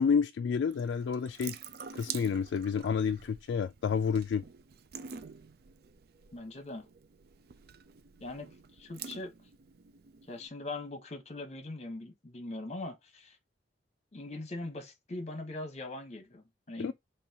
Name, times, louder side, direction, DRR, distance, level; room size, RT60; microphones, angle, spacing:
voice 1, 0.0-1.6 1.9-4.4 16.8-16.9, left 6 dB, 90° left, 0.3 m, -29 dB
Water tap faucet / Sink (filling or washing) / Drip, 0.7-10.5, right 7 dB, 60° right, 0.4 m, -48 dB
voice 2, 6.3-6.9 8.2-8.5 8.8-9.3 10.3-13.4 14.1-16.9, left 2 dB, 40° left, 1.1 m, -41 dB
5.5 x 3.3 x 2.8 m
head